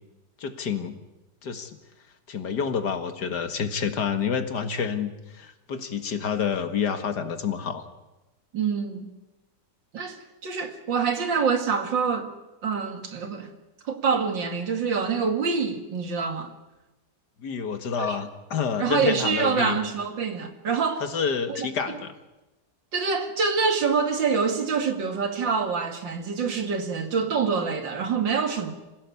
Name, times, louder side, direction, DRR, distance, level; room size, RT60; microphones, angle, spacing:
voice 1, 0.4-0.9 1.4-1.8 2.3-7.8 17.4-19.8 21.0-22.1, left 6 dB, 65° left, 2.3 m, -28 dB
voice 2, 8.5-9.1 9.9-12.3 12.6-13.5 13.8-16.5 18.0-18.2 18.8-21.0 21.5-21.7 22.9-28.7, right 5 dB, 85° right, 2.8 m, -26 dB
26.5 x 16.5 x 8.5 m
omnidirectional pair, 2.0 m